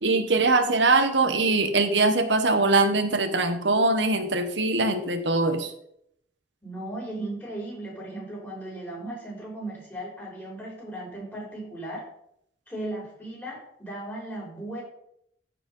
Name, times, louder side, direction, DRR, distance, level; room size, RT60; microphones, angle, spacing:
voice 1, 0.0-5.7, right 3 dB, 80° right, 8 dB, 1.3 m, -22 dB
voice 2, 6.6-12.0 12.7-14.8, right 1 dB, 10° left, -3 dB, 4.4 m, -36 dB
14.0 x 5.1 x 5.4 m, 0.72 s
head